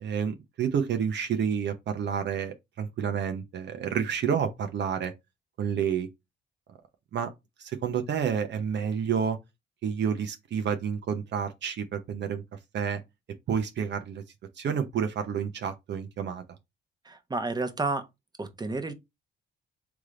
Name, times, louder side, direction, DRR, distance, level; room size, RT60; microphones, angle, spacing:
voice 1, 0.0-5.1 5.6-6.1 7.1-7.3 7.6-9.4 9.8-12.4 12.7-13.0 13.5-14.2 14.6-16.4, right 7 dB, 60° right, 0.7 m, -29 dB
voice 2, 17.0-18.1 18.4-18.9, right 3 dB, 20° right, 0.9 m, -31 dB
3.5 x 3.3 x 3.7 m
cardioid pair, 90°, 20 cm